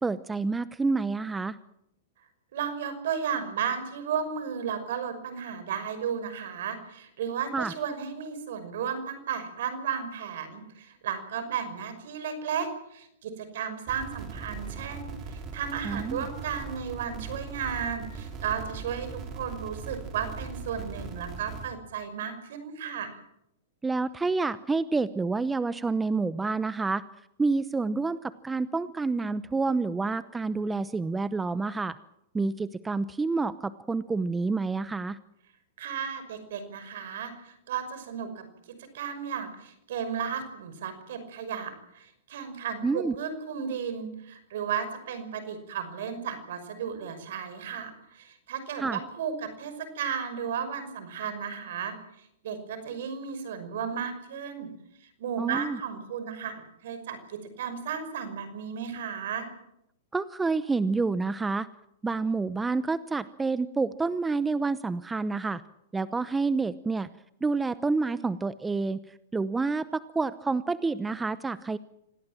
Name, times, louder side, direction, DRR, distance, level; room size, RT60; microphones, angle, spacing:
voice 1, 0.0-1.6 7.5-7.7 15.8-16.3 23.8-27.0 27.4-32.0 32.3-35.2 42.8-43.1 48.8-49.0 55.4-55.8 60.1-61.7 62.0-65.6 65.9-67.1 67.4-69.0 69.3-71.8, right 3 dB, 10° right, 15 dB, 0.8 m, -28 dB
voice 2, 2.5-23.2 35.8-38.4 38.9-54.7 55.0-59.5, right 7 dB, 65° right, 10 dB, 5.8 m, -34 dB
sound 1, 13.9-21.7, right 5 dB, 35° right, 5.1 m, -40 dB
26.0 x 18.0 x 7.6 m, 0.77 s
hypercardioid pair, 120°, 0 cm